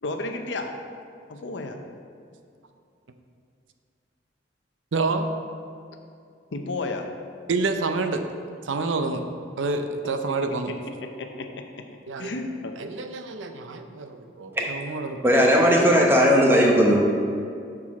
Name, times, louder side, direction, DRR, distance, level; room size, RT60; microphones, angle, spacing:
voice 1, 0.0-0.7 1.3-1.8 6.5-7.1 10.2-10.3 11.2-11.8 12.2-12.7, left 2 dB, 70° left, 5 dB, 0.7 m, -32 dB
voice 2, 4.9-5.3 7.5-8.2 8.6-9.2 9.6-10.7 12.1-12.3 12.8-15.2, right 3 dB, 90° right, 7 dB, 0.6 m, -28 dB
voice 3, 15.2-17.0, equal, 10° right, -1 dB, 0.9 m, -17 dB
7.3 x 6.1 x 4.2 m, 2.3 s
head